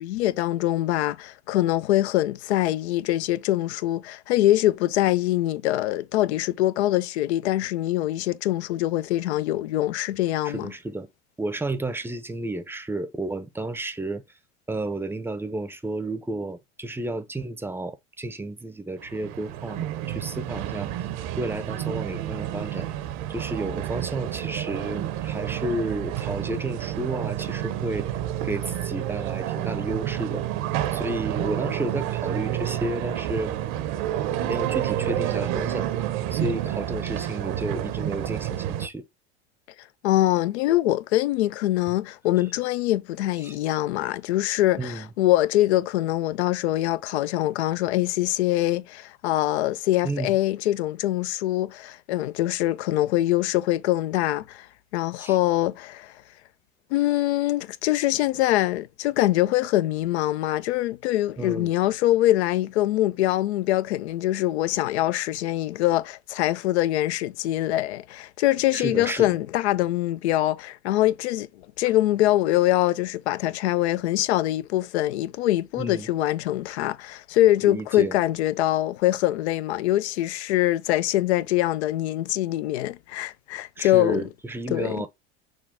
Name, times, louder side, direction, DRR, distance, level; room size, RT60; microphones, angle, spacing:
voice 1, 0.0-10.7 40.0-54.7 54.9-56.1 56.9-71.5 71.8-84.2 84.7-85.0, left 15 dB, 75° left, 0.5 m, -24 dB
voice 2, 10.4-11.1 11.4-14.2 14.7-20.9 21.4-22.9 23.3-28.1 28.4-30.4 30.9-33.6 34.4-35.9 36.3-39.1 43.4-43.6 44.8-45.1 50.0-50.3 55.2-55.4 61.4-61.7 68.7-69.3 75.8-76.1 77.6-78.2 83.8-85.1, right 2 dB, 5° right, 0.6 m, -32 dB
sound 1, 19.0-38.9, right 12 dB, 55° right, 0.7 m, -29 dB
6.3 x 2.3 x 3.6 m
hypercardioid pair, 90°, 33 cm